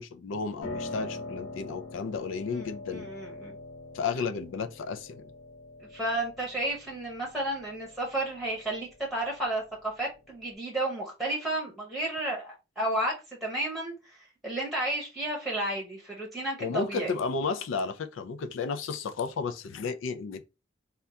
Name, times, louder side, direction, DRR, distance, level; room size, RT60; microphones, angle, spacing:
voice 1, 0.0-3.1 3.9-5.3 16.6-20.4, left 5 dB, 85° left, 0.4 m, -33 dB
Piano, 0.6-10.6, left 2 dB, 60° left, 1.8 m, -44 dB
voice 2, 2.5-3.6 5.8-13.1 13.4-14.2 14.4-17.1, right 1 dB, ahead, 0.8 m, -32 dB
3.5 x 2.3 x 2.7 m
head